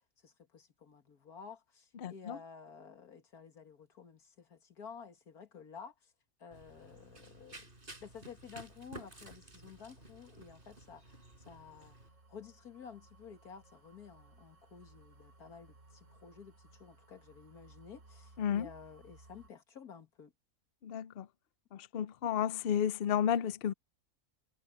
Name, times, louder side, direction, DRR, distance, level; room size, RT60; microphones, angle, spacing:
voice 1, 0.2-6.1 6.4-7.7 8.0-12.0 12.3-20.3, left 6 dB, 80° left, 2.3 m, -52 dB
voice 2, 2.0-2.4 18.4-18.7 20.8-21.3 21.7-23.7, left 9 dB, 55° left, 0.7 m, -32 dB
Run, 6.5-12.1, right 1 dB, 35° right, 4.6 m, -53 dB
sound 1, 10.1-19.5, right 2 dB, 55° right, 3.7 m, -61 dB
omnidirectional pair, 1.6 m